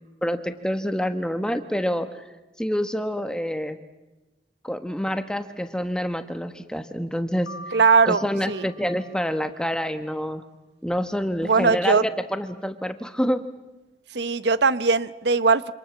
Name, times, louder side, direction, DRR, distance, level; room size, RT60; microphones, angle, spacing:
voice 1, 0.2-2.1 2.6-3.8 4.6-7.5 8.0-10.4 10.8-13.4, equal, 5° left, 9 dB, 1.2 m, -27 dB
Piano, 7.5-9.6, equal, 70° left, 1.7 m, -43 dB
voice 2, 7.7-8.6 11.4-12.0 14.1-15.7, right 5 dB, 75° right, 15 dB, 0.9 m, -20 dB
27.0 x 26.0 x 7.3 m, 1.1 s
head